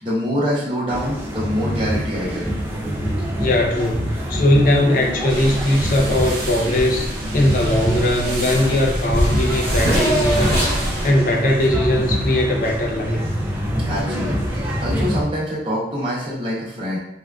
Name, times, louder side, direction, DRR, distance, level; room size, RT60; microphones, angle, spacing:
voice 1, 0.0-2.5 13.9-17.0, equal, 30° right, -6 dB, 0.8 m, -25 dB
sound 1, 0.9-15.2, equal, 15° right, 0.4 m, -25 dB
voice 2, 3.2-13.2, left 1 dB, 50° left, 0 dB, 0.5 m, -20 dB
sound 2, 5.3-11.1, right 1 dB, 55° right, 0.9 m, -28 dB
Race car auto racing / Accelerating revving vroom, 8.9-12.8, equal, 15° left, 1.3 m, -25 dB
3.5 x 2.4 x 2.3 m, 0.82 s
head